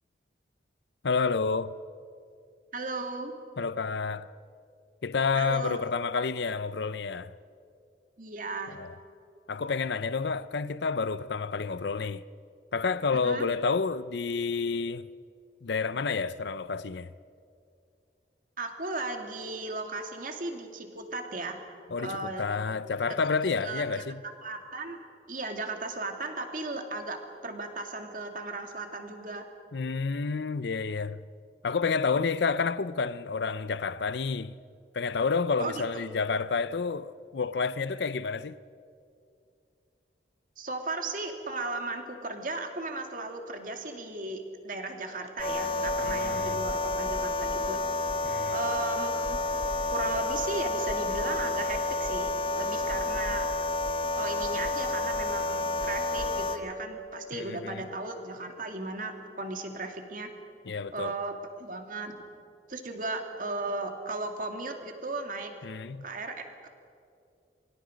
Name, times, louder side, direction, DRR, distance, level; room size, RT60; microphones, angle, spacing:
voice 1, 1.0-1.7 3.6-4.3 5.0-7.3 8.7-8.9 9.5-12.2 12.7-15.1 15.6-17.1 21.9-24.2 29.7-31.2 31.6-34.5 34.9-38.6 46.0-46.6 48.2-48.6 57.3-57.9 60.7-61.2 65.6-66.0, left 4 dB, 75° left, 0.6 m, -29 dB
voice 2, 2.7-3.3 5.3-5.8 8.2-8.8 13.2-13.5 18.6-21.6 22.0-22.4 23.6-24.0 24.4-25.0 25.3-29.4 35.6-35.8 40.6-47.8 48.5-49.4 49.9-53.5 54.2-60.3 60.9-62.1 62.7-65.5 66.0-66.7, right 2 dB, 50° right, 2.3 m, -36 dB
sound 1, 45.4-56.6, left 2 dB, 30° left, 1.3 m, -30 dB
27.0 x 25.0 x 5.2 m
head